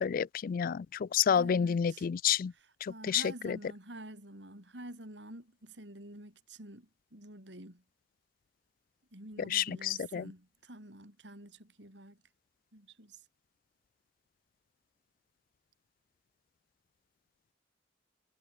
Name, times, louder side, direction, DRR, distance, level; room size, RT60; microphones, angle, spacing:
voice 1, 0.0-2.5 3.1-3.6 9.5-10.2, left 8 dB, 50° left, 0.3 m, -29 dB
voice 2, 1.3-2.1 2.5-7.8 9.1-12.2 12.7-13.2, right 1 dB, 75° right, 7.9 m, -49 dB
head